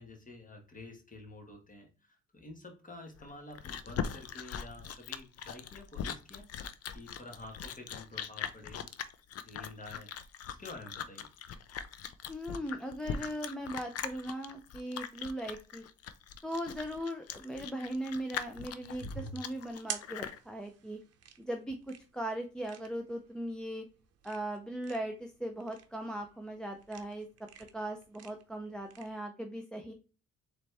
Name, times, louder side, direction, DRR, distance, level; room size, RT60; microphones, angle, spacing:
voice 1, 0.0-6.5 6.9-8.9 9.4-10.1 10.5-11.3, left 2 dB, 25° left, 2 dB, 1.6 m, -49 dB
Chewing mastication, 3.2-20.4, left 8 dB, 55° left, 0.5 m, -41 dB
voice 2, 12.3-15.8 16.4-21.0 21.4-23.8 24.2-27.3 27.7-29.9, right 1 dB, 5° left, 3 dB, 0.5 m, -39 dB
sound 1, 18.8-29.1, right 7 dB, 55° right, 0.7 m, -48 dB
4.0 x 3.3 x 3.3 m, 0.35 s
cardioid pair, 90°, 30 cm